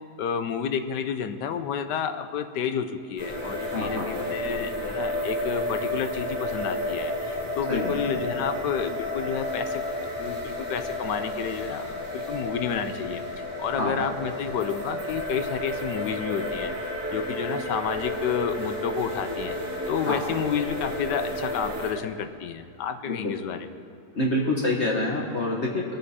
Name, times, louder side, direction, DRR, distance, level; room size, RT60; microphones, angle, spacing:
voice 1, 0.2-13.2 13.6-16.7 17.1-19.6 19.9-23.7, left 7 dB, 80° left, 9 dB, 1.4 m, -30 dB
sound 1, 3.2-21.9, left 1 dB, 10° right, 3.1 m, -31 dB
voice 2, 3.7-4.0 7.7-7.9 13.8-13.9 20.0-20.2 23.1-23.3 24.1-26.0, left 1 dB, 40° left, -2 dB, 1.5 m, -26 dB
21.5 x 9.3 x 4.3 m, 2.5 s
omnidirectional pair, 1.9 m